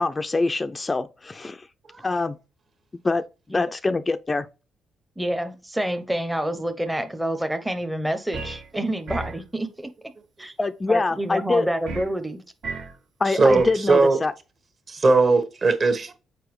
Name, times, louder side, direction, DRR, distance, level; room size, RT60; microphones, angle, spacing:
voice 1, 0.0-1.7 2.0-2.4 3.0-4.5 10.6-11.7 13.2-14.3, left 3 dB, 25° left, 0.3 m, -24 dB
voice 2, 5.2-9.9 10.4-10.5 10.9-12.4, right 1 dB, 5° right, 0.6 m, -28 dB
sound 1, 8.3-8.7 9.1-9.4 11.9-12.1 12.6-12.9 13.5-13.8, right 3 dB, 75° right, 1.6 m, -33 dB
voice 3, 13.3-14.2 14.9-16.1, right 3 dB, 45° right, 1.3 m, -19 dB
6.8 x 4.5 x 3.1 m
cardioid pair, 90°, 0 cm